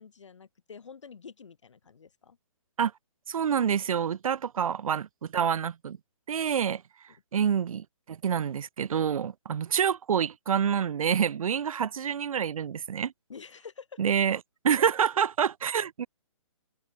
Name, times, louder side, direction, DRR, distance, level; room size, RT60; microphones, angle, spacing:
voice 1, 0.0-2.4 13.3-14.0, left 6 dB, 60° left, 3.0 m, -48 dB
voice 2, 3.3-6.0 6.3-6.8 7.3-13.1 14.0-14.4 14.6-16.1, right 8 dB, 90° right, 0.5 m, -27 dB
hypercardioid pair, 180°, 17 cm